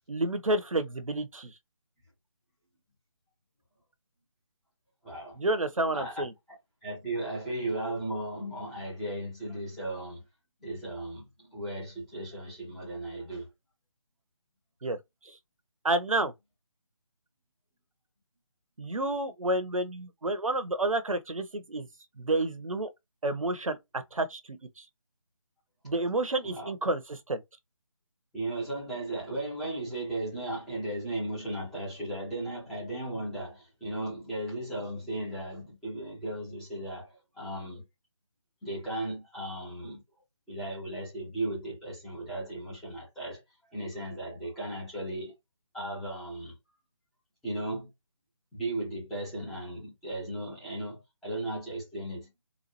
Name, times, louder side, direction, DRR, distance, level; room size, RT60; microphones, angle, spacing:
voice 1, 0.1-1.5 5.4-6.3 14.8-15.0 15.8-16.3 18.8-21.9 22.2-22.9 23.2-24.6 25.8-27.0 27.3-27.4, right 2 dB, 75° right, 0.7 m, -29 dB
voice 2, 5.0-5.4 5.9-6.2 6.8-10.2 10.6-13.5 25.8-25.9 26.4-26.7 28.3-37.8 38.6-40.0 40.5-45.3 45.7-46.6 47.4-47.9 48.5-52.3, right 1 dB, ahead, 0.5 m, -36 dB
4.0 x 2.2 x 2.9 m
figure-of-eight pair, 155°, 17 cm